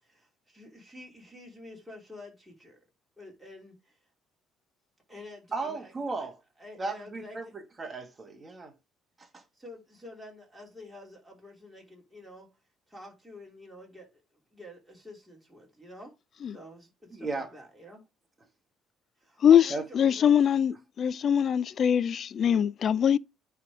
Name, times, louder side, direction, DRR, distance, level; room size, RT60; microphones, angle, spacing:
voice 1, 0.0-2.8 3.2-4.0 5.1-5.9 6.2-6.3 6.6-7.5 9.5-12.5 12.9-14.2 14.5-16.1 16.5-18.0 19.2-20.4, left 1 dB, 5° right, 3.1 m, -48 dB
voice 2, 5.5-6.3 6.8-8.7 9.2-9.4 17.1-17.5 19.7-19.8, right 3 dB, 20° right, 1.3 m, -35 dB
voice 3, 19.4-23.2, left 9 dB, 40° left, 0.3 m, -23 dB
9.6 x 3.4 x 3.6 m
cardioid pair, 140°, 0 cm